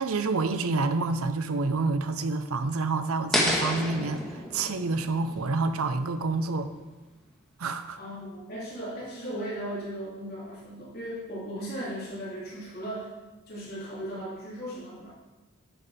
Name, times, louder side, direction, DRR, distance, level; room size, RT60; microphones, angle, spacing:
voice 1, 0.0-6.7 7.6-8.0, right 3 dB, 75° right, 10 dB, 0.7 m, -28 dB
sound 1, 3.3-6.4, equal, ahead, 1.5 m, -30 dB
voice 2, 8.0-13.1 13.5-15.1, right 1 dB, 45° left, -8 dB, 3.1 m, -37 dB
10.0 x 8.1 x 4.2 m, 1.2 s
head